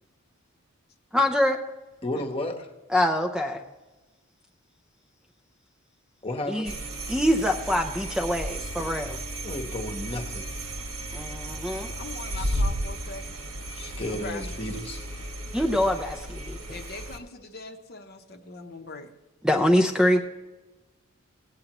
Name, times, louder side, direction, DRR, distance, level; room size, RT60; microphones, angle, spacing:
voice 1, 1.1-1.6 2.9-3.6 6.5-6.7 7.1-9.2 11.1-11.9 15.5-16.6 19.4-20.2, left 1 dB, 5° right, 4 dB, 0.5 m, -24 dB
voice 2, 2.0-2.7 6.2-6.7 9.4-10.5 12.3-12.6 13.7-15.0, left 1 dB, 25° left, 3 dB, 1.0 m, -33 dB
sound 1, 6.6-17.2, right 1 dB, 80° right, 1.5 m, -34 dB
voice 3, 12.0-13.4 14.1-14.5 16.7-19.1, left 3 dB, 45° left, 5 dB, 0.8 m, -41 dB
17.5 x 8.7 x 3.0 m, 1.1 s
head